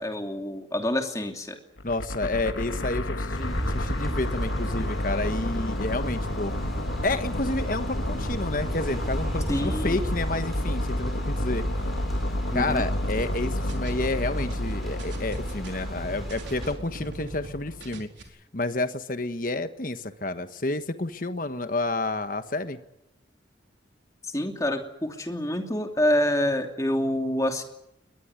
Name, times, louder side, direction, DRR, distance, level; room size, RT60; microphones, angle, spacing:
voice 1, 0.0-1.6 9.5-10.0 12.5-12.8 24.2-27.6, left 1 dB, 15° left, 4 dB, 2.8 m, -27 dB
sound 1, 1.8-18.0, left 1 dB, 80° left, 1.8 m, -31 dB
voice 2, 1.8-6.5 7.0-11.6 12.5-18.1 18.5-22.8, left 2 dB, 45° left, 10 dB, 1.3 m, -30 dB
sound 2, 3.3-16.7, equal, ahead, 7.4 m, -35 dB
sound 3, 13.0-17.5 17.8-18.2, right 1 dB, 70° right, 4.4 m, -42 dB
22.0 x 21.0 x 9.7 m, 0.81 s
head